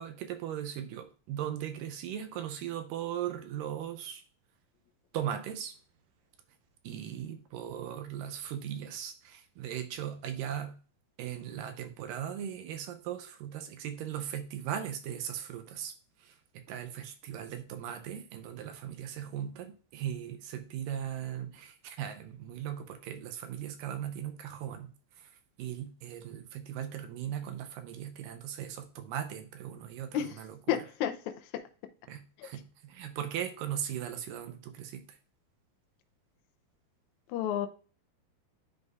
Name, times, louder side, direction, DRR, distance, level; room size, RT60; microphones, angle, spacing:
voice 1, 0.0-4.2 5.1-5.7 6.8-10.8 11.2-15.9 16.2-24.9 25.6-30.8 32.1-35.1, right 10 dB, 80° right, 2.1 m, -38 dB
voice 2, 30.7-31.1 32.4-32.5 37.3-37.7, left 10 dB, 85° left, 1.6 m, -30 dB
10.5 x 3.9 x 2.4 m
omnidirectional pair, 4.2 m